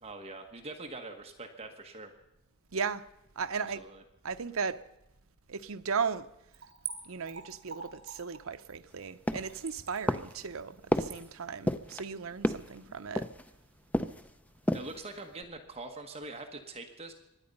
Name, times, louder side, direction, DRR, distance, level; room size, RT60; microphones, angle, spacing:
voice 1, 0.0-2.1 3.7-4.0 14.7-17.1, right 2 dB, 30° right, 1.3 m, -43 dB
voice 2, 2.7-3.0 3.4-3.8 4.2-4.8 5.5-6.3 7.0-13.3, right 5 dB, 70° right, 0.7 m, -36 dB
Splash splatter / Trickle dribble, 6.5-12.9 13.3-13.4, right 7 dB, 50° right, 3.7 m, -46 dB
sound 1, 9.3-9.7 10.1-10.5 10.9-11.2 11.7-12.0 12.4-12.8 13.2-13.5 13.9-14.3 14.6-15.0 15.4-15.5, left 1 dB, 5° left, 0.5 m, -31 dB
24.5 x 10.5 x 5.4 m
head